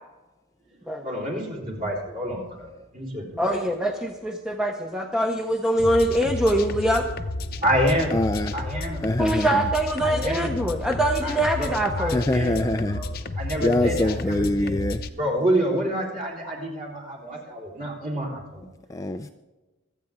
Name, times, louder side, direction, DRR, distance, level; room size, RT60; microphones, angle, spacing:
voice 1, 1.0-3.6 7.6-8.2 8.5-9.0 10.0-10.6 11.2-13.1 13.4-14.7 15.1-18.6, equal, 35° right, -1 dB, 3.9 m, -28 dB
voice 2, 3.4-7.1 9.2-12.2, right 1 dB, 5° right, 2 dB, 0.7 m, -23 dB
sound 1, 5.8-15.1, left 2 dB, 45° left, 0.7 m, -32 dB
voice 3, 8.1-8.5 9.0-9.6 12.1-13.0 13.6-15.0 18.9-19.3, left 1 dB, 15° left, 7 dB, 0.4 m, -24 dB
25.5 x 9.0 x 3.6 m, 1.1 s
head